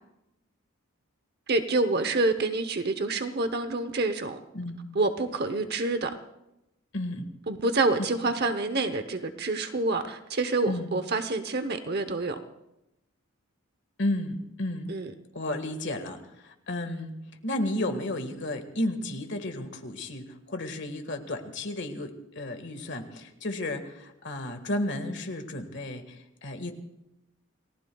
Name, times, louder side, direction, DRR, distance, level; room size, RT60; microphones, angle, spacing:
voice 1, 1.5-4.4 4.9-6.2 7.5-12.4 14.9-15.1, right 2 dB, 50° right, 9 dB, 0.8 m, -27 dB
voice 2, 6.9-7.3 8.0-8.1 10.7-10.9 14.0-14.9 15.3-17.1 17.4-26.7, left 1 dB, 55° left, 6 dB, 1.7 m, -33 dB
29.0 x 18.5 x 2.3 m, 0.87 s
head